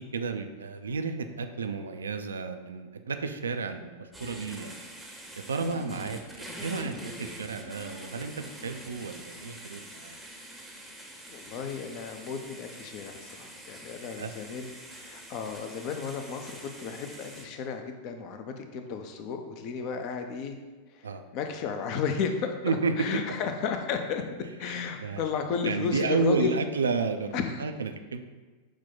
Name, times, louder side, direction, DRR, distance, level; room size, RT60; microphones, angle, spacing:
voice 1, 0.0-4.8 5.5-10.2 14.2-14.3 21.0-21.2 22.6-22.9 24.6-24.7 25.0-25.2 25.6-28.2, right 4 dB, 70° right, 7 dB, 0.3 m, -31 dB
sound 1, 4.1-17.4, right 1 dB, ahead, 0.7 m, -45 dB
voice 2, 5.7-6.2 11.3-20.6 20.9-21.1 21.3-24.2 24.6-26.6 27.3-27.6, left 6 dB, 40° left, 6 dB, 0.4 m, -33 dB
6.1 x 2.2 x 3.8 m, 1.3 s
figure-of-eight pair, 90°, 0 cm